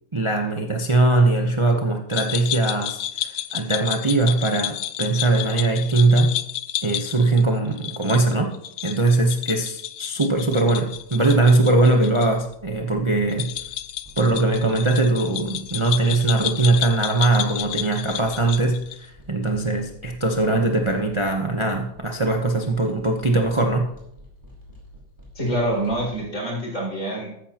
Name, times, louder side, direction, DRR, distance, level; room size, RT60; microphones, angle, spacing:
voice 1, 0.1-6.3 6.8-8.5 8.8-13.5 14.2-23.9, right 2 dB, 40° right, 1 dB, 0.4 m, -21 dB
sound 1, 2.1-12.3 12.5-12.6 13.3-19.1, left 12 dB, 70° left, 1.0 m, -31 dB
sound 2, 10.9-26.2, equal, 10° right, 5.0 m, -48 dB
voice 2, 25.3-27.3, right 1 dB, 35° left, -5 dB, 6.2 m, -26 dB
14.5 x 13.5 x 2.9 m, 0.76 s
omnidirectional pair, 2.2 m